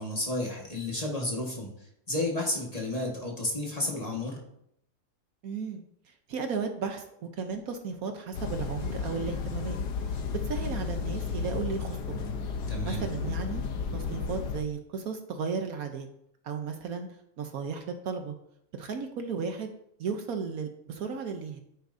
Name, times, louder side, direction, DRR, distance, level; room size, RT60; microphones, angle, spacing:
voice 1, 0.0-1.7 2.1-4.4 12.7-13.0, left 1 dB, 25° left, -1 dB, 1.7 m, -31 dB
voice 2, 5.4-5.8 6.3-9.8 10.1-12.3 12.8-13.6 13.9-16.1 16.4-17.1 17.4-18.4 18.8-19.7 20.0-21.6, right 5 dB, 65° right, 6 dB, 1.2 m, -34 dB
sound 1, 8.3-14.6, left 5 dB, 85° left, 1.4 m, -33 dB
9.3 x 9.0 x 2.7 m, 0.74 s
omnidirectional pair, 1.7 m